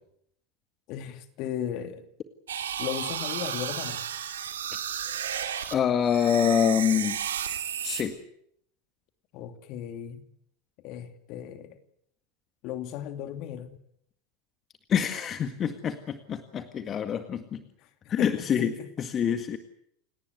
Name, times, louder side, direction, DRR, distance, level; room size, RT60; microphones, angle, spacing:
voice 1, 0.9-2.1 2.8-4.0 9.3-10.3 10.8-11.8 12.6-13.7 17.8-17.9 18.2-18.9, left 10 dB, 50° left, 8 dB, 2.7 m, -36 dB
sound 1, 2.5-5.7 6.1-8.0, right 9 dB, 75° right, 2.4 m, -33 dB
voice 2, 5.7-7.2 7.8-8.2 14.9-17.6 18.1-18.7 19.0-19.6, left 8 dB, 35° left, 8 dB, 1.9 m, -26 dB
29.5 x 18.5 x 8.3 m, 0.73 s
hypercardioid pair, 85°, 0 cm